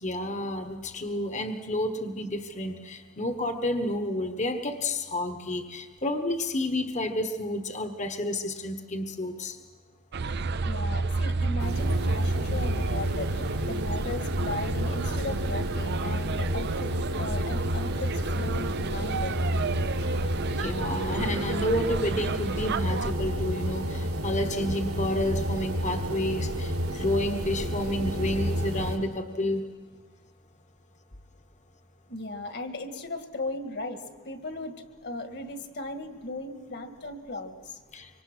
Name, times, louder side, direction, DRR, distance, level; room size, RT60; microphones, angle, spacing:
voice 1, 0.0-9.6 20.6-29.6 37.9-38.1, left 1 dB, 35° left, 7 dB, 1.3 m, -30 dB
sound 1, 10.1-23.1, right 3 dB, 50° right, 0.6 m, -32 dB
voice 2, 10.7-19.5 32.1-34.8 35.0-37.8, left 2 dB, 50° left, 7 dB, 1.9 m, -37 dB
sound 2, 11.6-29.0, equal, 85° right, 3.9 m, -30 dB
25.5 x 24.5 x 6.2 m, 1.4 s
head